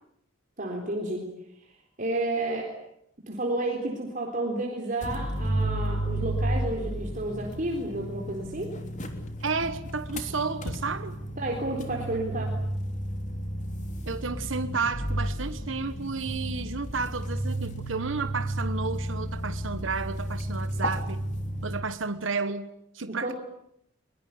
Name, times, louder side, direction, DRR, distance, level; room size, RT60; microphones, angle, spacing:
voice 1, 0.6-1.3 1.6-1.7 2.0-2.7 3.3-8.8 11.4-12.6 23.1-23.3, right 2 dB, 45° right, 1 dB, 3.9 m, -31 dB
sound 1, 5.0-21.8, right 1 dB, 40° left, 3.3 m, -32 dB
voice 2, 9.4-11.2 14.1-21.2 21.6-23.3, right 4 dB, 80° right, 11 dB, 1.3 m, -32 dB
22.5 x 22.0 x 9.6 m, 0.76 s
head